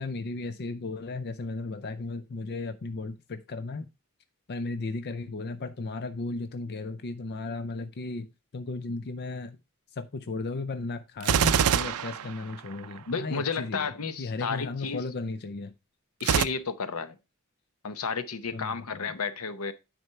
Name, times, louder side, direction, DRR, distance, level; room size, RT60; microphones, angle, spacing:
voice 1, 0.0-3.9 4.5-9.6 9.9-15.7 18.5-19.1, left 3 dB, 50° left, 0.5 m, -35 dB
Gunshot gunfire, 11.2-13.0 16.2-16.4, right 8 dB, 80° right, 0.4 m, -24 dB
voice 2, 13.1-15.0 16.2-17.2 17.8-19.7, left 5 dB, 75° left, 0.8 m, -32 dB
9.6 x 4.3 x 4.4 m
head